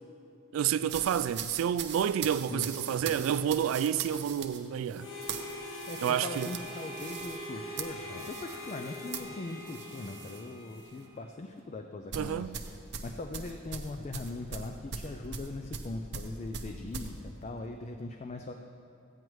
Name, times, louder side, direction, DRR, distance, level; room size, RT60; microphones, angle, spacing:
voice 1, 0.5-5.1 6.0-6.5 12.1-12.5, right 9 dB, 90° right, 0.3 m, -29 dB
sound 1, 0.8-10.5 10.8-11.1 12.1-17.1, right 6 dB, 60° right, 0.7 m, -41 dB
Harmonica, 5.0-11.3, left 1 dB, 85° left, 1.2 m, -43 dB
voice 2, 5.9-12.8 13.0-18.5, left 2 dB, 35° left, 0.4 m, -40 dB
14.5 x 9.1 x 3.1 m
head